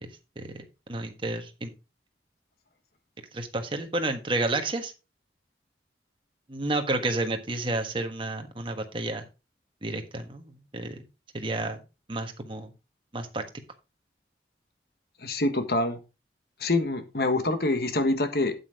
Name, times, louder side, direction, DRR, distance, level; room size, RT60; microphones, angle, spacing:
voice 1, 0.0-1.7 3.3-4.9 6.5-9.3 9.8-11.0 11.3-11.8 12.1-12.7 13.1-13.4, right 2 dB, 30° right, 6 dB, 1.4 m, -31 dB
voice 2, 15.2-16.0 16.6-18.5, left 2 dB, 60° left, 8 dB, 1.4 m, -25 dB
8.7 x 8.5 x 3.6 m, 0.28 s
head